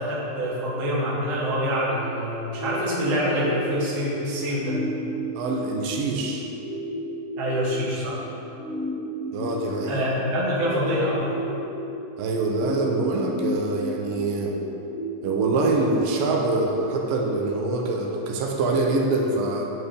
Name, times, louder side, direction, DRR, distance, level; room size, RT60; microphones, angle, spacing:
voice 1, 0.0-4.8 7.4-8.2 9.8-11.4, equal, 40° right, -8 dB, 0.7 m, -26 dB
sound 1, 2.5-18.5, equal, 35° left, 0.9 m, -34 dB
voice 2, 5.3-6.4 9.3-10.0 12.2-14.6 15.2-19.6, right 2 dB, 80° right, 0 dB, 2.3 m, -25 dB
8.9 x 4.0 x 5.3 m, 2.9 s
omnidirectional pair, 4.1 m